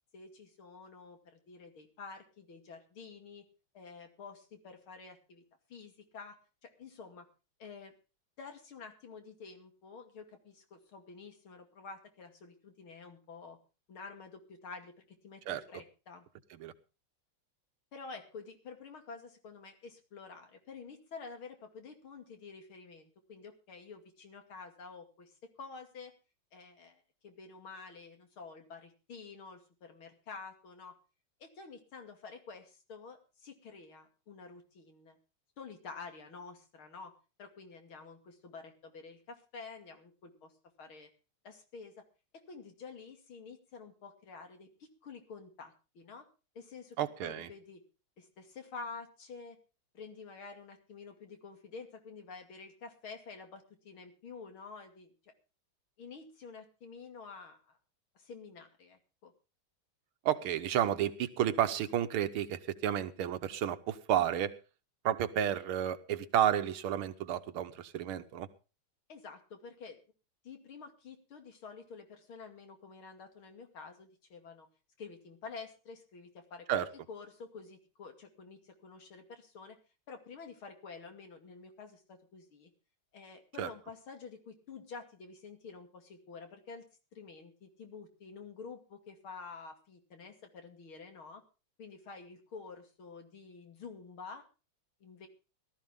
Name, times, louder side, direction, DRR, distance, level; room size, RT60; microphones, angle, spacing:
voice 1, 0.1-3.4 3.7-5.4 5.7-6.4 6.6-7.3 7.6-7.9 8.4-13.6 13.9-16.3 17.9-26.1 26.5-30.9 31.4-35.2 35.6-37.1 37.4-40.5 40.8-41.1 41.4-42.0 42.3-46.3 46.5-47.8 48.2-49.6 49.9-55.1 56.0-57.8 58.1-59.3 69.1-70.0 70.4-74.7 75.0-79.8 80.1-82.7 83.1-91.4 91.8-94.4 95.0-95.3, left 4 dB, 80° left, 5 dB, 3.3 m, -49 dB
voice 2, 47.0-47.5 60.3-64.5 65.1-68.5 76.7-76.9 83.6-83.7, right 10 dB, 85° right, 11 dB, 1.9 m, -31 dB
18.0 x 13.0 x 3.7 m, 0.32 s
omnidirectional pair, 2.3 m